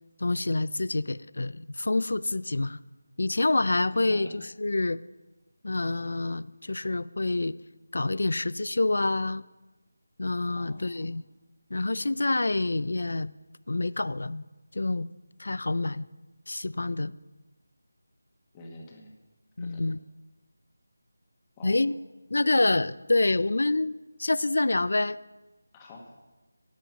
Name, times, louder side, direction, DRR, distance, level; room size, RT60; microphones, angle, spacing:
voice 1, 0.2-2.8 3.2-5.0 5.6-7.5 7.9-9.4 10.2-11.2 11.7-13.3 13.7-14.4 14.7-15.1 15.4-16.1 16.5-17.1 19.6-20.0 21.6-22.0 22.3-25.2, left 2 dB, 65° left, 18 dB, 0.4 m, -27 dB
voice 2, 3.9-4.4 10.5-11.0 18.5-19.1 19.6-19.8 21.6-21.8 25.7-26.2, left 1 dB, 15° left, 0 dB, 1.3 m, -46 dB
10.0 x 8.9 x 5.2 m, 1.1 s
figure-of-eight pair, 170°, 0 cm